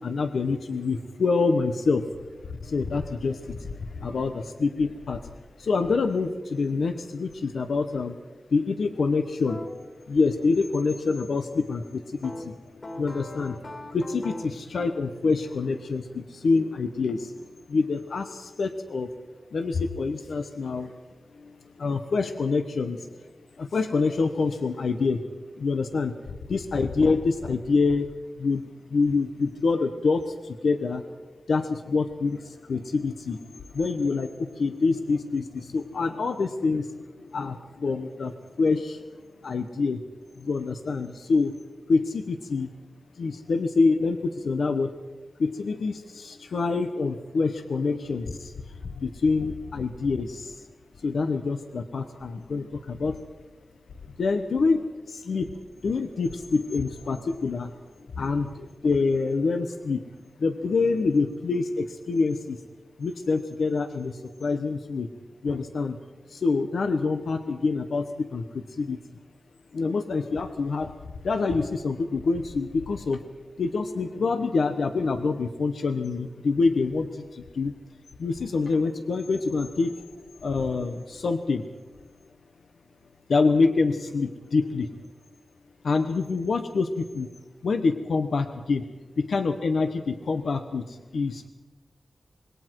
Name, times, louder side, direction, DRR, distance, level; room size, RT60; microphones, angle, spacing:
voice 1, 0.0-2.1 2.4-5.3 5.6-8.2 8.5-9.6 10.1-12.5 13.0-13.6 13.9-17.3 17.7-19.1 19.5-20.9 21.4-23.1 23.6-25.2 25.6-28.1 28.4-28.6 28.9-31.0 31.5-39.0 39.4-40.0 40.4-41.5 41.9-42.7 43.2-44.9 45.4-48.5 48.8-50.7 51.0-53.2 54.2-55.5 55.8-57.8 58.1-60.0 60.4-62.6 63.0-65.1 65.4-66.0 66.3-69.0 69.7-70.9 71.2-73.2 73.6-77.7 78.2-80.0 80.4-81.6 83.3-85.0 85.8-87.3 87.6-88.8 89.2-91.5, left 4 dB, 85° left, 7 dB, 1.2 m, -26 dB
sound 1, 9.5-9.7 12.2-14.7, left 1 dB, 40° left, 3.2 m, -39 dB
26.0 x 22.0 x 4.7 m, 1.2 s
wide cardioid pair, 140°, 0 cm